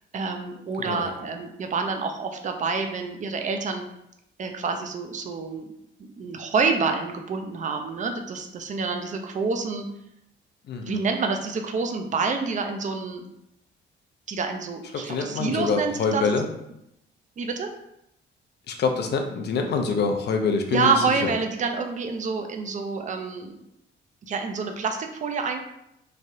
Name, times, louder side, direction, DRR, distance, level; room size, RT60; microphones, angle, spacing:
voice 1, 0.1-3.8 4.4-5.7 6.0-9.9 10.9-13.3 14.3-16.3 17.4-17.7 20.7-23.5 24.2-25.6, right 4 dB, 40° right, 5 dB, 0.5 m, -27 dB
voice 2, 10.7-11.0 14.9-16.5 18.7-20.9 21.2-21.3, left 4 dB, 55° left, 4 dB, 0.5 m, -25 dB
3.2 x 2.3 x 2.6 m, 0.81 s
cardioid pair, 90°, 20 cm